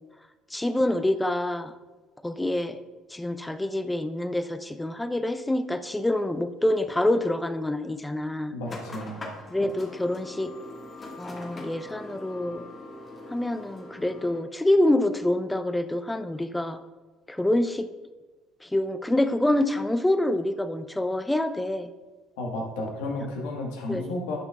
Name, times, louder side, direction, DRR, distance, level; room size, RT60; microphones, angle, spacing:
voice 1, 0.5-1.7 2.2-2.8 3.1-8.5 9.5-10.5 11.2-12.6 13.3-16.8 17.3-17.9 18.6-21.9 23.9-24.2, left 1 dB, 10° left, 11 dB, 0.5 m, -26 dB
voice 2, 8.5-9.2 22.4-24.4, left 2 dB, 85° left, 0 dB, 1.4 m, -32 dB
sound 1, 8.7-14.4, left 2 dB, 35° left, 1.7 m, -42 dB
10.5 x 5.9 x 2.4 m, 1.2 s
supercardioid pair, 75°, 0 cm